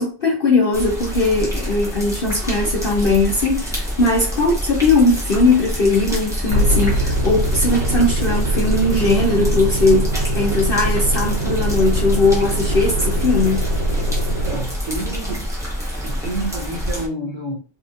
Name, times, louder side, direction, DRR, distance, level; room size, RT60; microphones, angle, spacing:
voice 1, 0.0-10.1 10.3-13.6, left 2 dB, 70° left, 0.5 m, -19 dB
sound 1, 0.7-17.1, equal, 5° right, 0.6 m, -27 dB
sound 2, 6.5-14.5, right 1 dB, 75° right, 1.6 m, -22 dB
voice 2, 14.3-15.6 16.0-17.6, right 2 dB, 60° right, 0.8 m, -29 dB
4.1 x 2.5 x 2.5 m
omnidirectional pair, 1.9 m